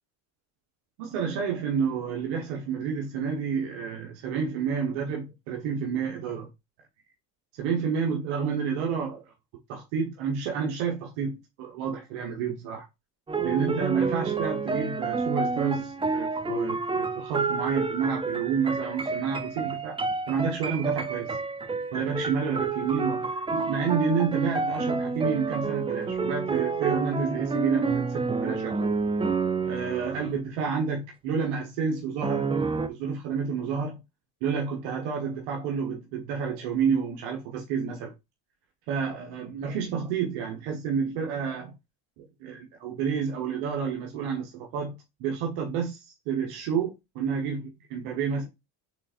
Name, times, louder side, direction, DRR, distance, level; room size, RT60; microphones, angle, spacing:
voice 1, 1.0-6.5 7.5-9.3 9.7-12.8 13.4-20.0 20.3-21.4 21.9-28.9 29.6-32.5 32.9-34.0 34.4-38.1 38.9-41.7 42.4-44.9 45.2-48.5, right 6 dB, 80° right, 1.3 m, -29 dB
sound 1, 13.3-30.4 32.2-32.9, right 4 dB, 10° right, 0.4 m, -29 dB
5.8 x 3.7 x 2.5 m
supercardioid pair, 75°, 49 cm